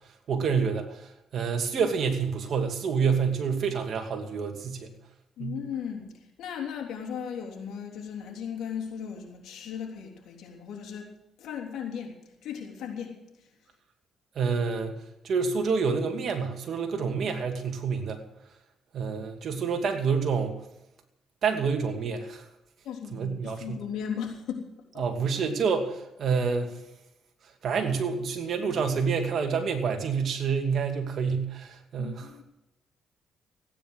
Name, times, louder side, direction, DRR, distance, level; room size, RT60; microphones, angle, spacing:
voice 1, 0.3-4.9 5.4-5.6 14.3-15.0 15.2-18.2 18.9-20.6 21.4-22.5 23.1-23.8 25.0-26.8 27.6-32.3, right 5 dB, 60° right, 4 dB, 2.6 m, -28 dB
voice 2, 5.4-6.1 6.4-11.1 11.4-12.2 12.4-13.1 22.8-24.6 24.9-25.0 32.0-32.4, left 8 dB, 80° left, 1 dB, 3.3 m, -36 dB
15.5 x 10.0 x 6.4 m, 0.89 s
cardioid pair, 90°, 0 cm